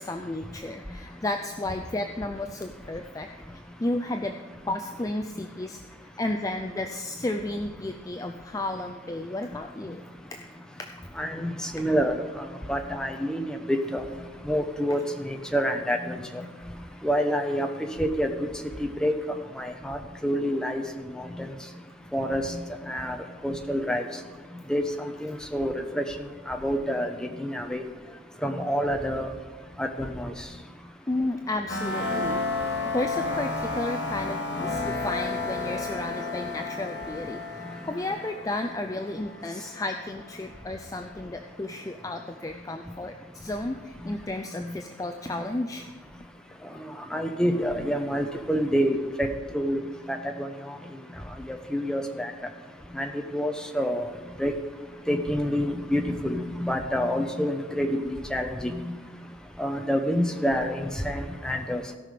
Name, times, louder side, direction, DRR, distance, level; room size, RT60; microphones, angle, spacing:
voice 1, 0.0-3.3 3.5-4.4 4.7-5.8 6.2-10.0 31.1-45.8 61.3-61.7, left 2 dB, 20° left, 5 dB, 0.4 m, -33 dB
voice 2, 11.2-12.1 12.7-14.0 14.5-16.4 17.0-17.7 18.0-18.3 18.8-19.1 19.6-20.0 20.2-20.8 21.2-21.5 22.1-22.6 22.9-23.2 23.4-24.1 24.7-24.8 25.2-26.0 26.5-27.8 28.4-29.3 29.8-30.3 45.3-45.4 47.1-49.3 49.5-49.8 50.1-50.5 51.5-52.3 52.9-54.1 54.4-54.5 55.1-58.0 58.3-58.8 59.6-61.9, equal, 5° left, 4 dB, 0.8 m, -27 dB
sound 1, 31.7-40.3, left 3 dB, 70° left, 1.0 m, -32 dB
16.5 x 5.8 x 5.1 m, 1.4 s
head